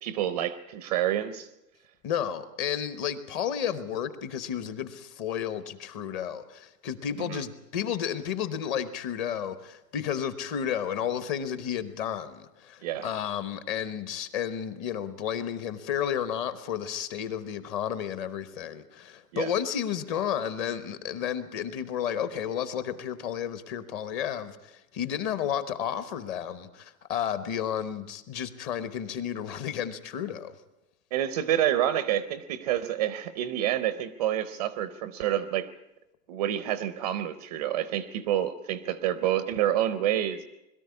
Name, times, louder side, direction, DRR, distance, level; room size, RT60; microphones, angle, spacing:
voice 1, 0.0-1.5 7.2-7.4 12.8-13.1 19.3-19.5 31.1-35.7 36.3-40.4, right 11 dB, 25° right, 14 dB, 0.6 m, -28 dB
voice 2, 2.0-30.5, left 9 dB, 25° left, 13 dB, 1.0 m, -32 dB
21.5 x 13.0 x 9.5 m, 0.93 s
hypercardioid pair, 155°, 46 cm